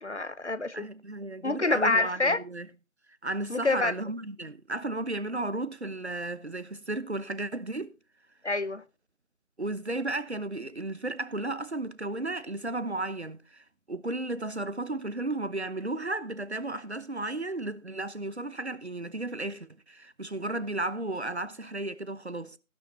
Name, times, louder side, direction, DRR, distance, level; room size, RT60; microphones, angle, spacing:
voice 1, 0.0-0.9 1.4-2.4 3.5-3.9 8.4-8.8, left 2 dB, 55° left, 0.9 m, -27 dB
voice 2, 0.7-2.7 3.2-7.9 9.6-22.6, right 2 dB, 50° right, 1.0 m, -34 dB
16.0 x 12.0 x 2.8 m
figure-of-eight pair, 175°, 41 cm